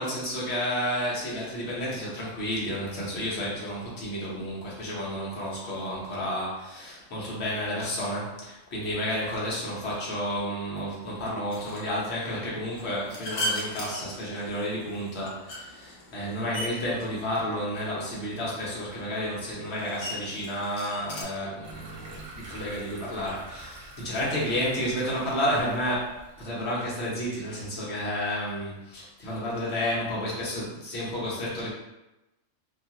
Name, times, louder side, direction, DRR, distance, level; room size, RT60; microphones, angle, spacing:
voice 1, 0.0-31.7, equal, 60° left, -5 dB, 1.1 m, -31 dB
sound 1, 11.5-21.2, left 1 dB, 85° left, 1.2 m, -39 dB
sound 2, 21.6-26.9, right 2 dB, 80° right, 1.1 m, -46 dB
2.9 x 2.3 x 2.8 m, 0.96 s
omnidirectional pair, 1.3 m